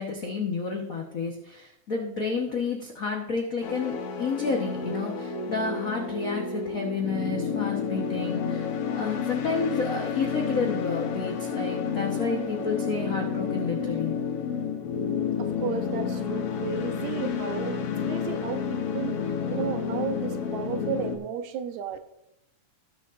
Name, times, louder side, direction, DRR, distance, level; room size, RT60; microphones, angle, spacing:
voice 1, 0.0-8.7 8.9-14.1, left 4 dB, 90° left, 0.7 m, -30 dB
sound 1, 3.6-21.2, left 6 dB, 65° left, 1.7 m, -30 dB
voice 2, 15.4-19.2 19.5-22.0, right 7 dB, 80° right, 2.1 m, -33 dB
17.5 x 6.8 x 2.5 m
omnidirectional pair, 3.3 m